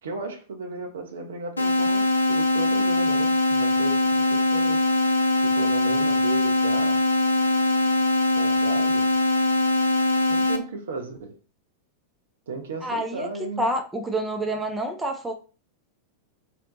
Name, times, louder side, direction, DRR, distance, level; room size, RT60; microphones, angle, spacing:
voice 1, 0.0-4.8 5.3-7.0 8.3-9.1 10.3-11.4 12.5-13.7, right 3 dB, 65° right, 0.5 m, -35 dB
sound 1, 1.6-10.6, left 2 dB, 75° left, 0.4 m, -22 dB
voice 2, 12.8-13.3 13.6-15.3, right 1 dB, 10° right, 0.5 m, -27 dB
2.6 x 2.1 x 3.8 m
figure-of-eight pair, 90°, 0 cm